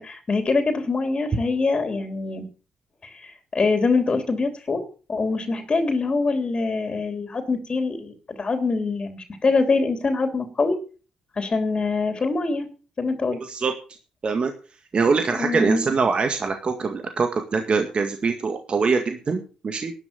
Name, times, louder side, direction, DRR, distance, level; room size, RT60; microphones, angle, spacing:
voice 1, 0.0-2.5 3.0-4.8 5.1-10.8 11.3-12.7 13.0-13.4 15.3-15.8, left 3 dB, 35° left, 7 dB, 3.4 m, -24 dB
voice 2, 13.4-13.7 14.2-14.5 14.9-19.9, right 4 dB, 45° right, 6 dB, 2.0 m, -23 dB
12.0 x 11.0 x 7.0 m, 0.37 s
hypercardioid pair, 55°, 3 cm